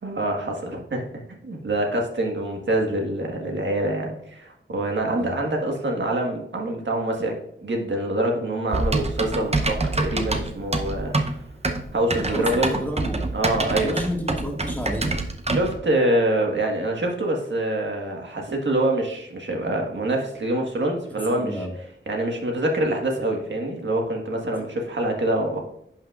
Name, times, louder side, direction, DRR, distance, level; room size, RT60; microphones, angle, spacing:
voice 1, 0.0-11.1 11.9-12.7 13.3-14.0 15.5-21.6 22.1-25.7, right 1 dB, 65° right, 1 dB, 1.5 m, -25 dB
voice 2, 5.2-5.5 12.3-13.3 13.7-15.2 21.1-21.7, equal, 10° left, -1 dB, 1.9 m, -31 dB
Typing, 8.7-15.8, right 2 dB, 30° right, 0.7 m, -26 dB
10.5 x 5.9 x 2.4 m, 0.73 s
wide cardioid pair, 90°, 20 cm